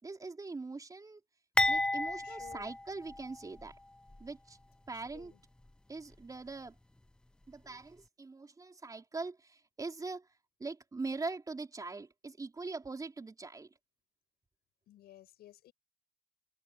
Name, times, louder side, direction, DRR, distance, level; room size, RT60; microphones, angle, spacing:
voice 1, 0.0-1.2 1.7-3.7 4.2-4.6 4.9-5.3 5.9-6.7 7.5-10.3 10.6-13.7, right 3 dB, 20° right, 3.8 m, -42 dB
sound 1, 1.6-3.7 4.1-4.2 5.1-5.3, left 1 dB, 5° left, 0.3 m, -32 dB
voice 2, 2.2-2.7 4.9-5.4 14.9-15.7, left 13 dB, 70° left, 7.2 m, -56 dB
cardioid pair, 110°, 17 cm